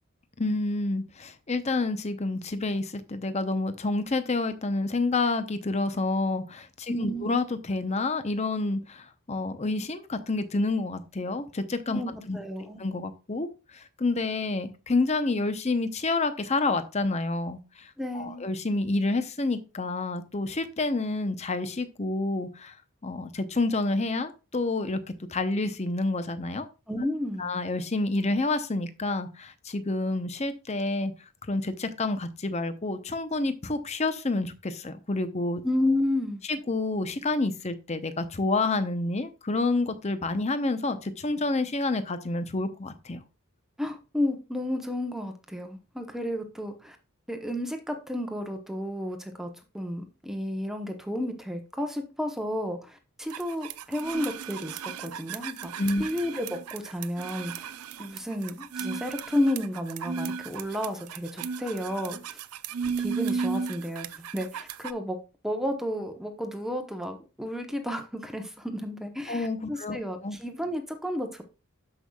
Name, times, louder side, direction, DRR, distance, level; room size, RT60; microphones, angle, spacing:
voice 1, 0.4-12.0 12.3-12.4 12.8-22.8 23.0-25.0 25.3-26.7 27.4-31.1 31.5-35.6 36.5-43.2 55.8-56.0 69.3-70.0 70.2-70.4, left 2 dB, 30° left, 10 dB, 0.7 m, -28 dB
voice 2, 6.9-7.3 11.9-12.8 18.0-18.4 26.9-27.5 35.6-36.4 43.8-47.0 47.3-55.7 56.0-57.7 58.0-62.4 63.0-65.2 65.4-71.4, left 1 dB, ahead, 5 dB, 0.9 m, -32 dB
sound 1, 53.3-64.9, right 6 dB, 85° right, 0.5 m, -35 dB
12.5 x 5.4 x 2.3 m, 0.31 s
head